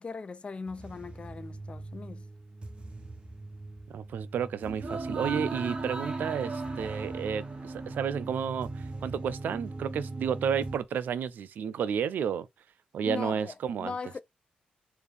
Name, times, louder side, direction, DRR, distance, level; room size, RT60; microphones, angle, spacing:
voice 1, 0.0-2.3 13.0-14.2, left 4 dB, 35° left, 0.4 m, -39 dB
sound 1, 0.7-10.8, right 3 dB, 35° right, 1.0 m, -38 dB
voice 2, 3.9-12.5 12.9-13.9, right 7 dB, 75° right, 0.3 m, -31 dB
3.4 x 2.6 x 3.3 m
cardioid pair, 65°, 3 cm